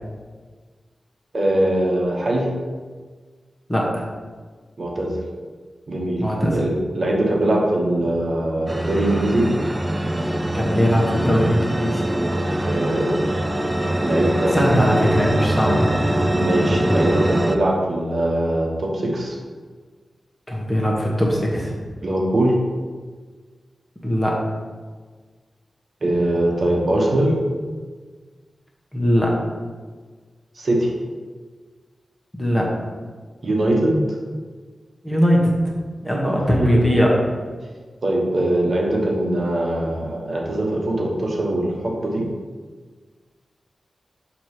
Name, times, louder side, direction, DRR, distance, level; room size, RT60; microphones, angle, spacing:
voice 1, 1.3-2.5 4.8-5.1 5.9-6.2 6.5-9.5 12.7-13.2 14.0-15.0 16.3-19.4 22.0-22.5 26.0-27.3 30.6-30.9 33.4-34.0 36.6-36.9 38.0-42.3, right 1 dB, 55° right, -1 dB, 1.1 m, -21 dB
voice 2, 3.7-4.0 6.2-6.6 10.5-12.0 14.5-15.9 20.5-21.7 24.0-24.4 28.9-29.3 32.4-32.7 35.0-35.5 36.0-37.2, equal, 10° left, -3 dB, 1.4 m, -20 dB
sound 1, 8.7-17.6, right 1 dB, 15° right, 0.4 m, -23 dB
6.8 x 3.0 x 4.8 m, 1.5 s
cardioid pair, 70°, 0 cm